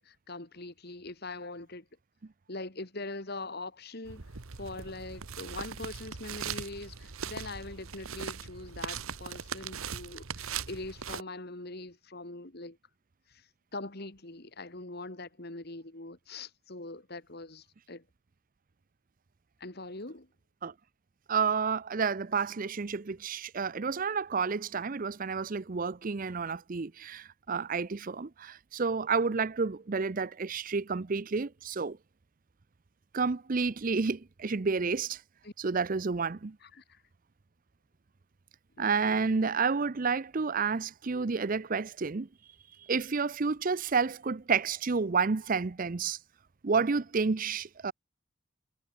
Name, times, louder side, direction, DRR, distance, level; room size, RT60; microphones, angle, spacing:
voice 1, 0.0-1.9 2.5-4.3 4.6-12.8 13.3-18.0 19.6-20.3 35.4-35.5 36.6-37.0 38.8-39.3, left 2 dB, 45° left, 2.1 m, -42 dB
sound 1, 4.1-11.2, right 7 dB, 75° right, 1.2 m, -40 dB
voice 2, 21.3-32.0 33.1-35.2 35.6-36.6 38.8-42.3 42.9-46.2 46.6-47.9, right 5 dB, 40° right, 0.5 m, -30 dB
head